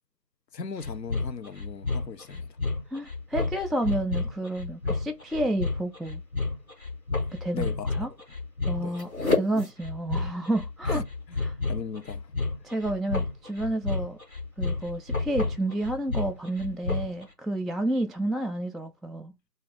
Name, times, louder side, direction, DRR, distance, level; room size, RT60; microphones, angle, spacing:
voice 1, 0.5-2.6 7.5-7.9 8.8-9.1 10.9-11.0 11.3-11.4 11.7-12.3, left 5 dB, 80° left, 0.6 m, -37 dB
sound 1, 0.8-17.2, left 3 dB, 55° left, 1.5 m, -30 dB
voice 2, 2.9-6.2 7.3-7.7 8.0-8.1 8.7-11.0 11.4-11.5 12.6-14.2 14.6-19.3, right 1 dB, ahead, 0.4 m, -30 dB
3.6 x 2.5 x 3.7 m
figure-of-eight pair, 180°, 49 cm